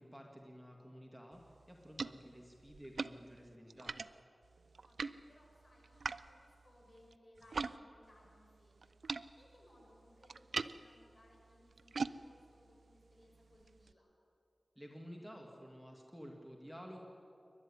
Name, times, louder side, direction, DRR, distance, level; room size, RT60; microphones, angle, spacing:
voice 1, 0.0-1.4 1.7-3.9 14.8-17.1, equal, ahead, 1 dB, 2.1 m, -52 dB
sound 1, 1.3-7.8 8.0-13.9, right 4 dB, 85° right, 0.5 m, -45 dB
voice 2, 4.6-14.1, left 1 dB, 45° left, -2 dB, 7.4 m, -65 dB
28.0 x 12.0 x 9.8 m, 2.8 s
wide cardioid pair, 70°, 0 cm